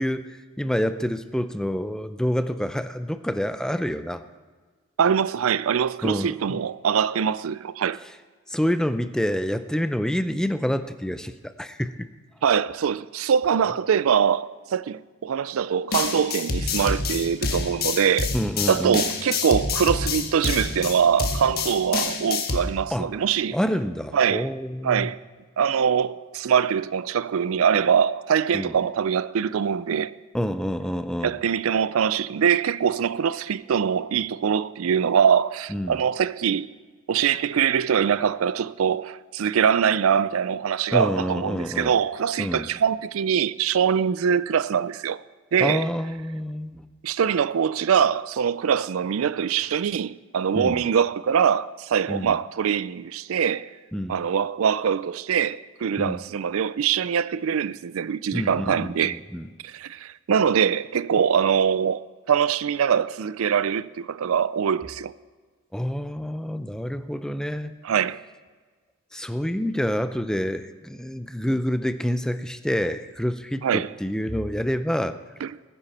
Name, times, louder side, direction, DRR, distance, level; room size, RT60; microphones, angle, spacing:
voice 1, 0.0-4.2 6.0-6.4 8.5-12.1 18.3-19.0 22.9-23.1 23.5-25.1 28.5-28.7 30.3-31.4 35.7-36.0 40.9-41.9 42.4-42.7 45.6-46.8 50.5-50.9 52.1-52.4 53.9-54.2 56.0-56.2 58.3-59.5 65.7-67.7 69.1-75.2, equal, 5° left, 0.5 m, -27 dB
voice 2, 5.0-8.0 12.4-18.3 18.7-23.6 24.1-24.5 24.8-25.2 25.6-30.1 31.2-36.7 37.1-45.2 45.5-45.9 47.0-53.7 54.1-59.2 59.6-65.1 67.8-68.2 73.6-73.9 75.4-75.5, right 7 dB, 80° right, 0.4 m, -23 dB
sound 1, 15.9-22.6, left 4 dB, 50° left, 1.3 m, -27 dB
19.5 x 10.0 x 4.2 m
head